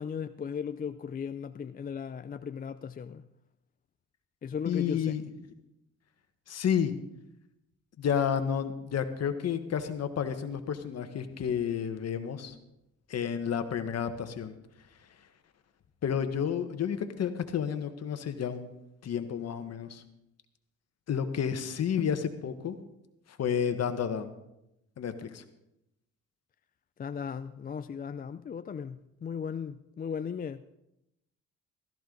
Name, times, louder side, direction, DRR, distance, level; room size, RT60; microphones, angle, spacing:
voice 1, 0.0-3.2 4.4-5.2 27.0-30.6, left 7 dB, 30° left, 0.4 m, -37 dB
voice 2, 4.6-5.2 6.5-6.9 8.0-12.5 13.1-14.5 16.0-18.7 19.0-20.0 21.1-22.8 23.3-24.3 25.0-25.4, left 8 dB, 55° left, 1.4 m, -31 dB
15.5 x 13.5 x 3.9 m
cardioid pair, 90°, 30 cm